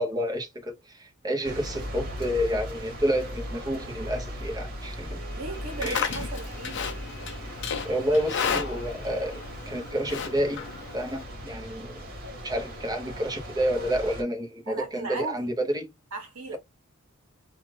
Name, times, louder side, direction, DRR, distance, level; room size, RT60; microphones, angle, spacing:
voice 1, 0.0-5.2 5.8-6.2 7.8-10.6 10.9-12.1 12.4-15.9, equal, 20° right, 0.8 m, -29 dB
sound 1, 1.4-14.2, equal, 45° right, 1.1 m, -38 dB
voice 2, 5.3-7.0 14.7-15.5 16.1-16.6, right 3 dB, 80° right, 0.9 m, -36 dB
Livestock farm animals working animals, 5.5-11.2, left 6 dB, 60° left, 0.5 m, -34 dB
2.4 x 2.4 x 3.1 m
head